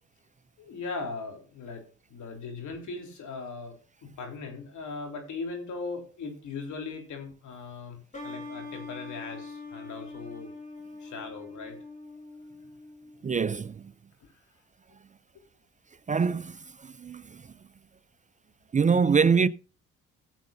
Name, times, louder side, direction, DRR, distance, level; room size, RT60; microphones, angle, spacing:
voice 1, 0.6-8.0 8.2-10.5 11.0-11.8 14.2-14.3 15.3-15.4, left 4 dB, 75° left, 3.7 m, -39 dB
sound 1, 8.1-13.6, left 3 dB, 25° left, 3.8 m, -43 dB
voice 2, 13.2-13.8 16.1-17.4 18.7-19.5, right 5 dB, 25° right, 0.4 m, -24 dB
17.0 x 7.9 x 2.7 m
cardioid pair, 90°, 30 cm